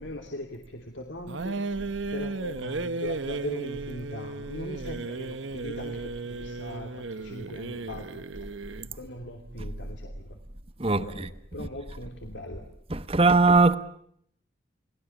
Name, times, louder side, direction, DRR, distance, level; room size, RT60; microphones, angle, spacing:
voice 1, 0.0-1.6 2.1-8.5 8.9-10.4 10.8-12.7, left 1 dB, 70° left, 2.9 m, -40 dB
sound 1, 1.3-8.9, right 3 dB, 75° right, 1.0 m, -35 dB
voice 2, 10.8-11.3 11.6-11.7 12.9-13.8, right 3 dB, 30° right, 1.1 m, -21 dB
30.0 x 19.5 x 7.1 m
head